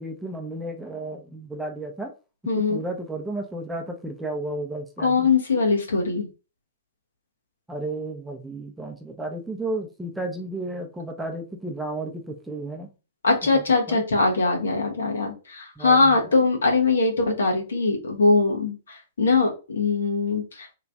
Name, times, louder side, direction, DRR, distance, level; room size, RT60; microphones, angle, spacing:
voice 1, 0.0-2.1 2.7-5.3 7.7-12.9 13.5-13.6 13.9-14.0 15.8-16.2, right 2 dB, 5° right, 2 dB, 0.6 m, -33 dB
voice 2, 2.5-2.8 5.0-6.3 13.2-20.7, left 3 dB, 70° left, 1 dB, 1.1 m, -22 dB
3.1 x 2.5 x 3.5 m, 0.32 s
figure-of-eight pair, 110°, 0 cm